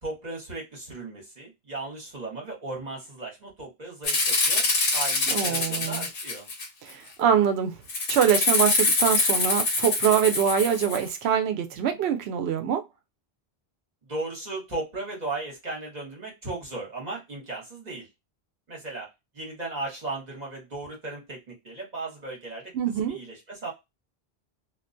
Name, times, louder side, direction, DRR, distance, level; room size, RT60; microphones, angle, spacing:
voice 1, 0.0-4.6 4.9-6.5 14.0-18.1 18.7-19.1 19.3-22.7 23.1-23.7, right 2 dB, 45° right, 1.1 m, -36 dB
Rattle (instrument), 4.0-6.9 7.9-11.1, left 3 dB, 60° left, 1.0 m, -25 dB
voice 2, 5.3-6.1 6.8-7.7 8.1-12.8 22.7-23.2, right 8 dB, 90° right, 0.8 m, -24 dB
2.4 x 2.2 x 2.5 m
omnidirectional pair, 1.0 m